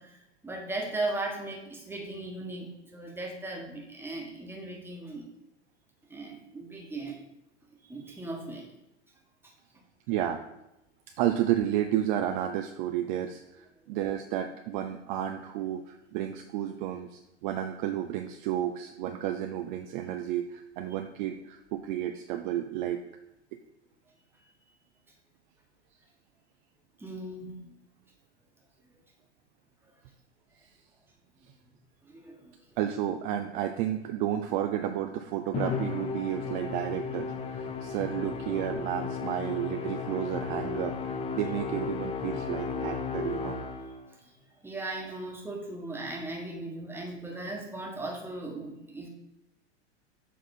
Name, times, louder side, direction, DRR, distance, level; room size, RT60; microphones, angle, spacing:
voice 1, 0.0-5.3 6.1-7.2 7.9-8.7 9.4-9.8 27.0-27.8 29.8-30.0 31.5-31.7 32.0-32.6 44.1-49.1, right 2 dB, 5° right, 0 dB, 1.4 m, -38 dB
voice 2, 10.1-10.4 11.2-23.0 32.8-43.6, right 11 dB, 45° right, 6 dB, 0.5 m, -32 dB
Musical instrument, 35.5-44.1, left 5 dB, 15° left, 0.4 m, -34 dB
7.2 x 4.2 x 4.2 m, 0.90 s
hypercardioid pair, 100°, 36 cm